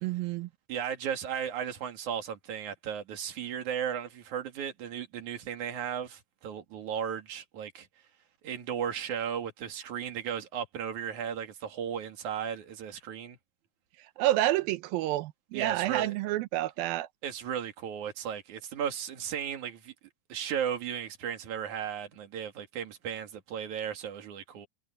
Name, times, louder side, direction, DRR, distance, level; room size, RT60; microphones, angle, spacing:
voice 1, 0.0-0.5 14.2-17.1, right 15 dB, 80° right, 2.2 m, -29 dB
voice 2, 0.7-7.9 8.4-13.4 15.5-16.1 17.2-19.9 20.3-24.7, right 8 dB, 50° right, 3.1 m, -35 dB
omnidirectional pair, 5.0 m